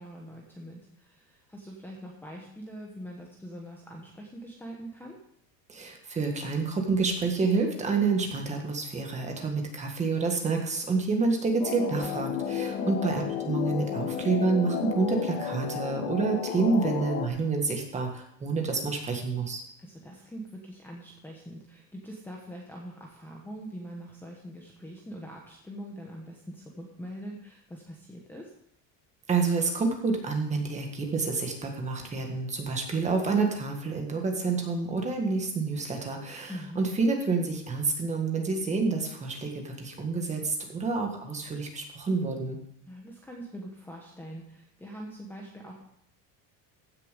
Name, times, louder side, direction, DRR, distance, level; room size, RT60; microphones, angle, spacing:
voice 1, 0.0-5.2 12.7-13.0 19.8-28.5 36.5-36.8 42.8-45.8, equal, 5° left, -1 dB, 1.1 m, -43 dB
voice 2, 5.7-19.6 29.3-42.6, right 4 dB, 15° right, 2 dB, 1.7 m, -28 dB
sound 1, 11.6-17.3, left 7 dB, 70° left, 1.6 m, -32 dB
15.0 x 6.8 x 5.2 m, 0.71 s
cardioid pair, 170°, 39 cm